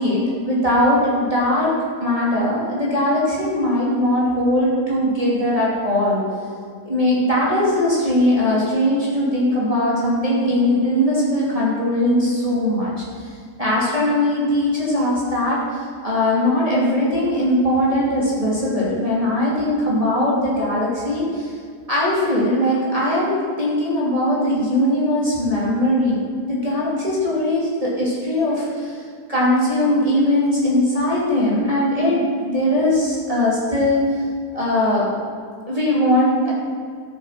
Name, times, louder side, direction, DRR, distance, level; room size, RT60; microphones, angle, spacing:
voice 1, 0.0-1.7 2.0-6.2 6.8-13.3 13.6-21.5 21.9-29.0 29.3-34.2 34.5-35.1 35.7-36.5, left 1 dB, 20° right, -8 dB, 2.8 m, -20 dB
13.5 x 7.4 x 5.9 m, 2.2 s
omnidirectional pair, 1.8 m